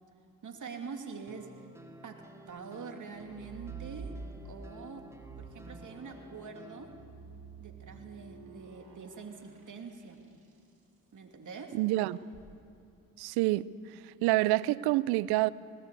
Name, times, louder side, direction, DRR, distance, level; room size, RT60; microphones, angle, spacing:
voice 1, 0.4-1.5 2.0-5.1 5.4-6.9 7.6-10.2 11.1-11.8, right 5 dB, 55° right, 2.8 m, -45 dB
sound 1, 1.3-7.0, right 1 dB, 5° right, 2.5 m, -53 dB
sound 2, 3.2-4.6 5.1-10.6 12.1-12.5, right 5 dB, 70° right, 5.1 m, -48 dB
voice 2, 11.7-12.2 13.2-13.7 14.0-15.5, right 18 dB, 90° right, 0.5 m, -27 dB
19.5 x 18.5 x 8.4 m
supercardioid pair, 55°, 37 cm